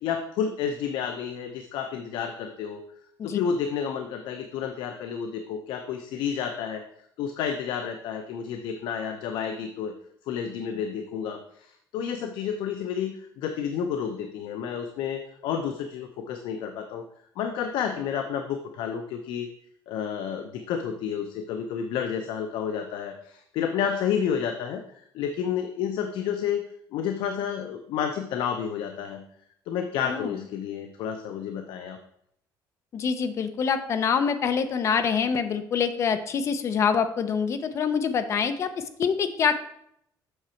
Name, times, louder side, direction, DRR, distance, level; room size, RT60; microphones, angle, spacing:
voice 1, 0.0-2.8 3.2-6.8 7.2-9.9 10.3-17.0 17.4-19.5 19.9-26.6 26.9-29.2 29.7-32.0, left 7 dB, 70° left, 6 dB, 0.7 m, -30 dB
voice 2, 30.0-30.4 32.9-39.6, left 6 dB, 35° left, 10 dB, 0.7 m, -25 dB
7.9 x 6.0 x 4.4 m, 0.71 s
cardioid pair, 160°, 8 cm